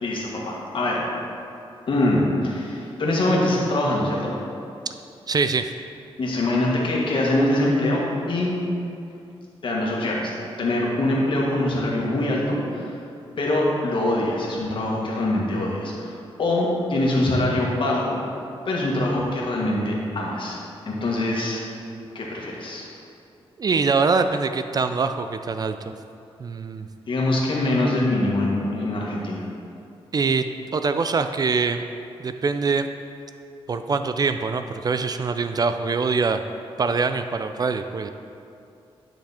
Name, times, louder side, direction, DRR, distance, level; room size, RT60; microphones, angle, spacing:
voice 1, 0.0-1.0 1.9-4.3 6.2-8.6 9.6-10.3 10.6-12.9 13.4-18.2 18.7-20.6 20.9-21.6 22.1-22.9 27.1-29.4, left 1 dB, 55° left, -3 dB, 1.8 m, -23 dB
voice 2, 5.3-5.7 23.6-25.7 26.4-26.9 30.1-31.8 32.2-32.9 33.7-36.4 36.8-38.1, right 4 dB, 40° right, 9 dB, 0.4 m, -23 dB
10.5 x 5.9 x 4.3 m, 2.6 s
wide cardioid pair, 115°, 10 cm